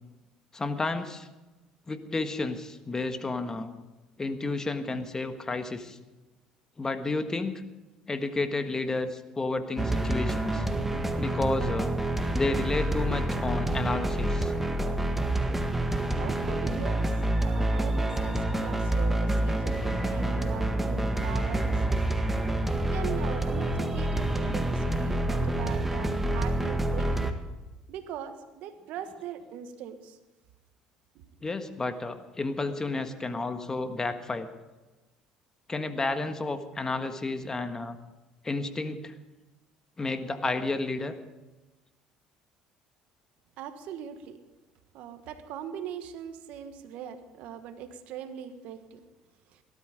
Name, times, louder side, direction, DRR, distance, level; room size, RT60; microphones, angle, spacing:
voice 1, 0.5-1.3 1.9-3.7 4.2-6.0 6.8-7.6 8.1-10.7 11.2-11.9 12.3-14.5 31.4-34.5 35.7-38.0 38.4-39.1 40.0-41.1, left 3 dB, 25° left, 8 dB, 1.5 m, -31 dB
sound 1, 9.8-27.3, right 1 dB, 10° right, 1.8 m, -27 dB
voice 2, 16.2-17.1 17.4-22.0 22.9-27.3 27.9-30.2 43.6-44.4 44.9-49.0, right 9 dB, 70° right, 9 dB, 1.4 m, -40 dB
18.0 x 12.5 x 5.1 m, 1.1 s
hypercardioid pair, 70°, 2 cm